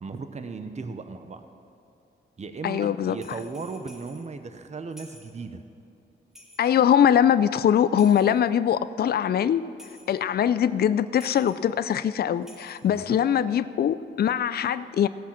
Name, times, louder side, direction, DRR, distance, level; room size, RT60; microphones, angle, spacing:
voice 1, 0.0-1.5 2.4-5.6 12.8-13.2, right 4 dB, 35° right, 9 dB, 0.8 m, -36 dB
voice 2, 2.6-3.2 6.6-9.6 10.1-15.1, left 9 dB, 50° left, 14 dB, 0.4 m, -22 dB
sound 1, 3.1-4.3 4.9-5.4 6.3-6.9 8.0-8.6 9.8-10.2 11.2-11.7 12.4-13.0, left 1 dB, ahead, 1.7 m, -51 dB
16.0 x 5.7 x 7.4 m, 2.6 s
cardioid pair, 75°, 20 cm